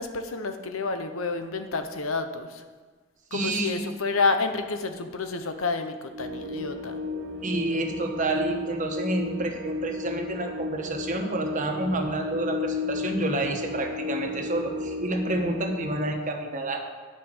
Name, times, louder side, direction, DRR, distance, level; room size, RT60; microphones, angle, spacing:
voice 1, 0.0-2.6 3.3-7.0, left 3 dB, 85° left, 7 dB, 1.0 m, -29 dB
voice 2, 3.3-3.8 7.4-16.8, right 2 dB, 40° right, 3 dB, 1.2 m, -29 dB
sound 1, 6.1-16.1, left 3 dB, 60° right, 0.9 m, -34 dB
10.0 x 5.6 x 8.0 m, 1.4 s
head